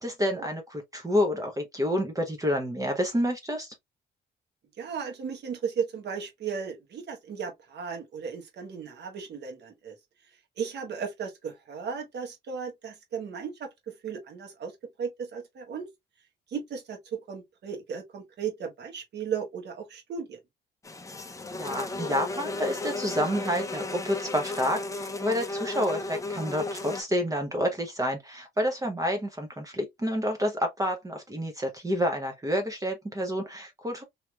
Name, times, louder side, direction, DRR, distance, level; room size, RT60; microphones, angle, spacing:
voice 1, 0.0-3.7 21.5-34.0, equal, 15° right, 0.8 m, -29 dB
voice 2, 4.8-9.9 10.6-14.7 15.0-15.9 16.5-20.4, right 6 dB, 60° right, 1.3 m, -35 dB
sound 1, 20.8-27.0, left 2 dB, 15° left, 0.6 m, -34 dB
3.2 x 2.8 x 2.3 m
cardioid pair, 90°, 20 cm